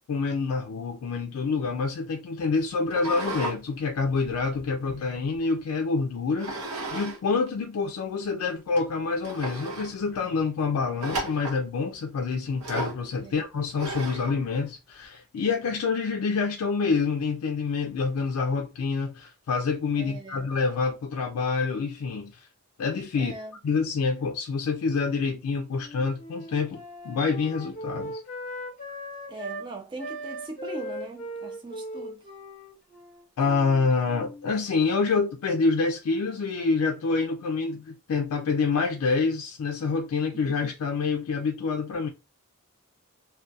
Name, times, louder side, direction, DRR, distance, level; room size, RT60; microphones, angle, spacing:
voice 1, 0.1-22.5 22.8-23.3 23.6-28.2 33.4-42.1, left 4 dB, 75° left, 0.3 m, -27 dB
sound 1, 2.9-3.6 4.0-5.4 6.4-7.2 7.5-7.6 8.2-8.3 8.8-8.9 9.2-9.9 11.0-11.6 12.6-13.0 13.8-14.3, right 2 dB, 90° right, 0.9 m, -34 dB
voice 2, 19.9-20.4 23.2-23.5 29.3-32.2, right 3 dB, 20° right, 0.3 m, -40 dB
Wind instrument woodwind instrument, 25.7-29.7 30.0-34.5, equal, 35° left, 0.8 m, -39 dB
2.3 x 2.2 x 2.6 m
head